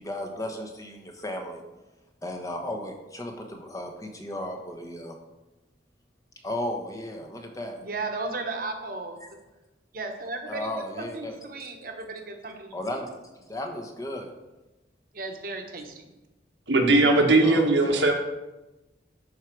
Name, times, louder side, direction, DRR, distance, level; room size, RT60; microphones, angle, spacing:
voice 1, 0.0-1.6 2.2-5.2 6.4-7.8 10.5-11.4 12.7-13.1 13.4-14.3 17.4-18.1, left 1 dB, 20° left, 3 dB, 0.9 m, -35 dB
voice 2, 7.8-9.2 9.9-12.7 15.1-16.1, right 3 dB, 50° right, 4 dB, 1.2 m, -35 dB
voice 3, 16.7-18.1, right 2 dB, 85° right, 2 dB, 1.4 m, -19 dB
11.0 x 4.8 x 4.6 m, 1.0 s
head